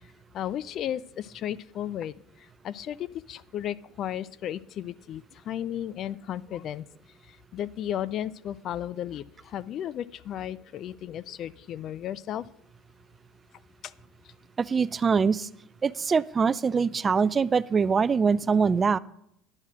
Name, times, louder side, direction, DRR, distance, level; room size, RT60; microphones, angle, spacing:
voice 1, 0.3-6.8 7.2-12.5 13.8-13.9, left 11 dB, 50° left, 19 dB, 0.3 m, -34 dB
voice 2, 14.6-15.5 15.8-19.0, right 5 dB, 25° right, 19 dB, 0.3 m, -23 dB
10.5 x 6.5 x 6.0 m, 0.75 s
supercardioid pair, 100°, 0 cm